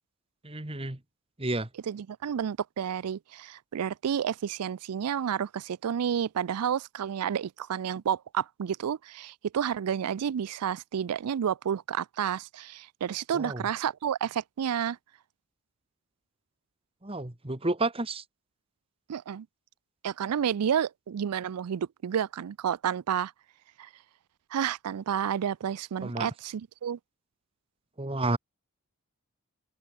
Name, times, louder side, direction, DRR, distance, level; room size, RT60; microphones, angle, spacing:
voice 1, 0.4-1.0 1.4-1.7 13.3-13.6 17.0-18.2 26.0-26.3 28.0-28.4, right 2 dB, 25° right, 1.5 m, -31 dB
voice 2, 1.9-15.0 19.1-19.5 20.0-23.3 23.8-23.9 24.5-27.0, right 8 dB, 90° right, 0.4 m, -30 dB
open air
head